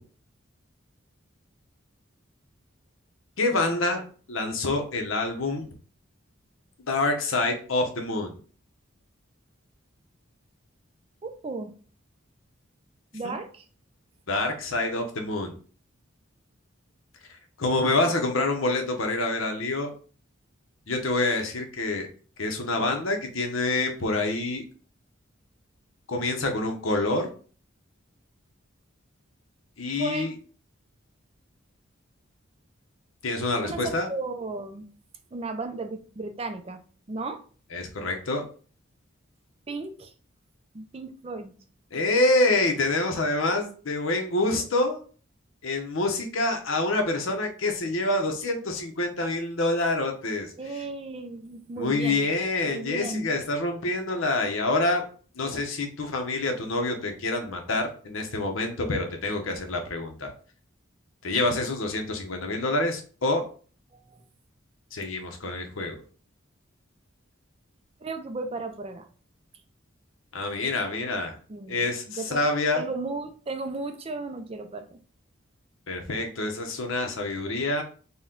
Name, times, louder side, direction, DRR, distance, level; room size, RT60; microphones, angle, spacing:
voice 1, 3.4-4.0 4.3-5.7 6.8-8.4 13.2-13.3 14.3-15.5 17.6-19.9 20.9-22.1 22.4-24.6 26.1-27.3 29.8-30.3 33.2-34.1 37.7-38.4 41.9-45.0 45.6-50.5 51.8-55.0 55.4-60.3 61.2-63.4 64.9-66.0 70.3-71.4 71.7-72.8 75.9-77.8, left 2 dB, 80° left, 0.9 m, -27 dB
voice 2, 11.2-11.7 13.1-13.7 30.0-30.3 33.6-34.9 35.3-36.8 37.1-37.4 39.7-40.1 40.7-41.6 50.6-52.2 52.6-53.3 63.9-64.2 68.0-69.1 71.5-71.9 72.2-72.4 72.8-75.0, right 3 dB, 30° right, 0.4 m, -35 dB
4.1 x 2.2 x 3.7 m
head